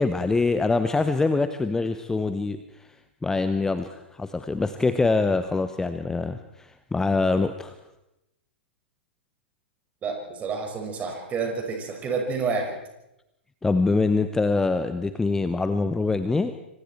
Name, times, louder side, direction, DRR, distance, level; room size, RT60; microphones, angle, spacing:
voice 1, 0.0-2.9 3.2-7.7 13.6-16.5, left 3 dB, 10° left, 10 dB, 0.9 m, -24 dB
voice 2, 10.0-12.7, right 4 dB, 25° right, 2 dB, 5.9 m, -29 dB
27.0 x 25.5 x 4.5 m, 0.90 s
figure-of-eight pair, 105°, 6 cm